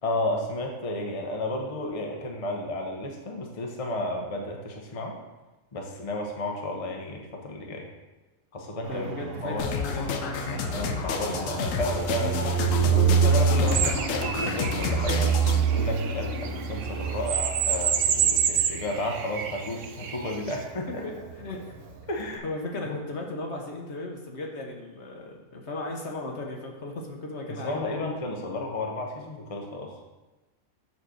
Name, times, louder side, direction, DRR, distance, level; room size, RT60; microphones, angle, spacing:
voice 1, 0.0-5.1 5.7-7.9 8.5-9.1 9.4-9.7 10.7-15.3 15.7-21.0 22.1-22.4 22.9-23.0 27.5-29.9, left 1 dB, 30° left, 1 dB, 0.9 m, -32 dB
Fixed-wing aircraft airplane, 8.8-22.3, right 6 dB, 50° right, 0.9 m, -28 dB
voice 2, 8.9-10.7 11.2-11.3 21.0-21.7 22.4-27.9, left 2 dB, 55° left, 0 dB, 1.2 m, -36 dB
sound 1, 9.6-15.6, left 6 dB, 70° left, 1.0 m, -30 dB
sound 2, 13.7-20.6, right 8 dB, 85° right, 1.1 m, -28 dB
7.0 x 4.2 x 6.4 m, 1.1 s
omnidirectional pair, 1.4 m